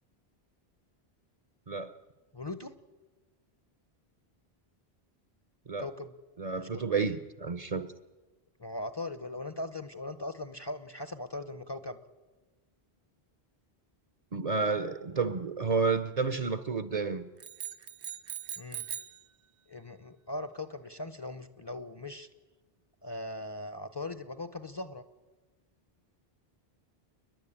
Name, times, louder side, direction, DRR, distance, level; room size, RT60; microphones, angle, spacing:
voice 1, 2.3-2.7 5.8-6.1 6.6-6.8 8.6-12.0 18.6-18.8 19.7-22.3 23.0-25.0, left 2 dB, 25° left, 0.7 m, -39 dB
voice 2, 6.4-7.9 14.3-17.3, right 4 dB, 40° right, 0.7 m, -30 dB
sound 1, 17.4-19.2, right 9 dB, 65° right, 1.0 m, -40 dB
29.5 x 10.5 x 8.8 m
omnidirectional pair, 1.1 m